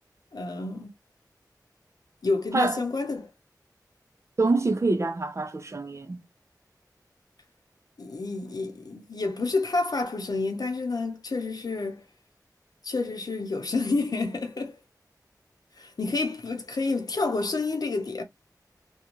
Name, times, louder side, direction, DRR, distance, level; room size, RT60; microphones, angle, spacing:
voice 1, 0.3-0.9 2.2-3.3 8.0-12.0 12.8-14.8 15.8-18.2, left 3 dB, 65° left, 0.8 m, -29 dB
voice 2, 4.4-6.2, right 3 dB, 40° right, 0.5 m, -25 dB
2.5 x 2.2 x 3.0 m
wide cardioid pair, 80°, 7 cm